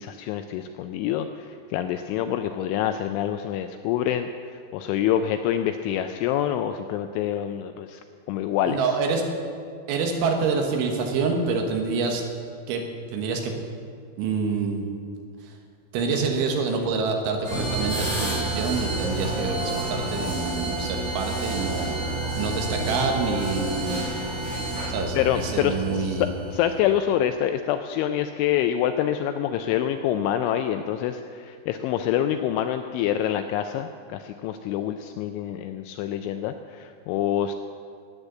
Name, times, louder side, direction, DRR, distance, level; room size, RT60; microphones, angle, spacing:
voice 1, 0.0-8.0 8.3-8.8 25.1-37.5, left 10 dB, 85° left, 8 dB, 2.8 m, -26 dB
voice 2, 8.7-9.2 9.9-12.2 12.7-12.8 13.1-13.5 14.2-14.9 15.4-15.5 15.9-22.0 22.4-24.0 24.9-26.3, right 4 dB, 75° right, 3 dB, 3.7 m, -26 dB
sound 1, 17.4-24.9, right 1 dB, 30° right, 5.4 m, -32 dB
sound 2, 17.5-26.9, right 2 dB, 60° left, 4.7 m, -32 dB
13.5 x 9.7 x 8.1 m, 2.2 s
omnidirectional pair, 5.8 m